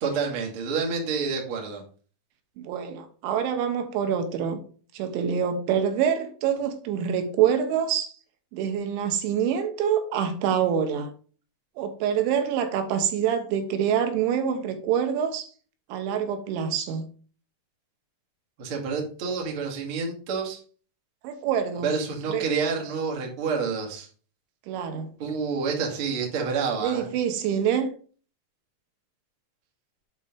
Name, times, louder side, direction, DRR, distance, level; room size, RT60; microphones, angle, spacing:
voice 1, 0.0-1.8 18.6-20.6 21.8-24.1 25.2-27.1, right 5 dB, 50° right, 1.6 m, -28 dB
voice 2, 2.6-4.6 4.9-8.1 8.5-11.1 11.8-15.5 15.9-17.0 21.2-21.9 22.3-22.4 24.7-25.1 26.8-27.9, right 8 dB, 80° right, 3.1 m, -26 dB
8.4 x 4.2 x 5.1 m
omnidirectional pair, 5.6 m